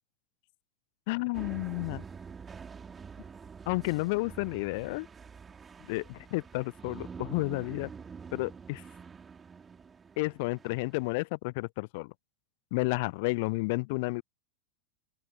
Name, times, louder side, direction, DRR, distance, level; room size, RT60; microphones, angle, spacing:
voice 1, 1.1-2.0 3.7-5.1 5.9-7.9 8.3-8.8 10.2-12.1 12.7-14.2, left 26 dB, 50° left, 0.5 m, -31 dB
sound 1, 1.3-11.1, right 6 dB, 15° right, 3.2 m, -46 dB
open air
figure-of-eight pair, 90°, 0 cm